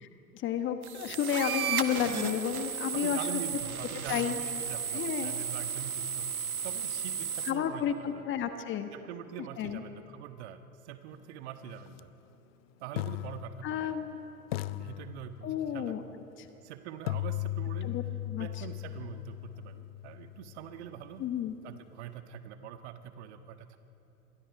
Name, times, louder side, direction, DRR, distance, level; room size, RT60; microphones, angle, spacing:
voice 1, 0.3-3.2 4.1-4.4 4.9-5.3 7.5-8.9 9.6-9.8 13.6-14.2 15.4-16.0 16.4-16.5 17.8-18.0 18.3-18.5 21.2-21.5, left 9 dB, 25° left, 8 dB, 1.2 m, -31 dB
sound 1, 0.8-7.5, right 7 dB, 75° right, 1.5 m, -34 dB
voice 2, 2.9-6.3 6.6-8.2 8.9-12.1 12.8-14.0 14.8-16.1 16.6-18.0 18.4-21.3 21.6-23.8, right 9 dB, 50° right, 9 dB, 1.5 m, -44 dB
sound 2, 11.9-12.0 13.0-14.1 14.5-15.8 17.1-21.0, left 15 dB, 45° left, 0.5 m, -37 dB
27.5 x 22.5 x 4.8 m, 2.8 s
figure-of-eight pair, 100°, 44 cm